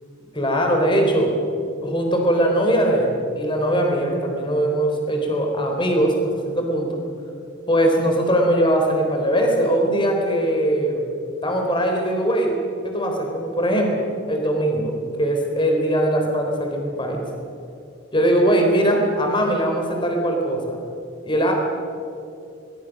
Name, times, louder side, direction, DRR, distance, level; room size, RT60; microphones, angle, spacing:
voice 1, 0.3-1.3 1.8-7.0 7.7-11.0 11.4-12.5 12.8-17.2 18.1-20.8 21.2-21.5, right 1 dB, 25° left, 2 dB, 3.9 m, -21 dB
23.0 x 20.5 x 6.6 m, 2.6 s
head